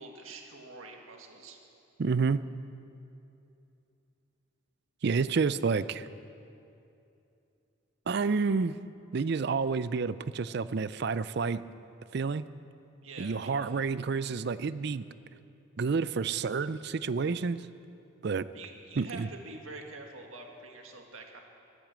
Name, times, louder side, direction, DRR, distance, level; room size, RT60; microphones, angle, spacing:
voice 1, 0.0-1.6 13.0-13.5 18.5-21.4, right 3 dB, 85° right, 2 dB, 1.9 m, -46 dB
voice 2, 2.0-2.4 5.0-6.1 8.1-8.8 9.1-11.6 12.1-12.5 13.2-15.1 15.8-17.7 18.2-18.5 19.0-19.3, right 4 dB, 55° right, 15 dB, 0.4 m, -29 dB
15.0 x 12.5 x 7.4 m, 2.7 s
head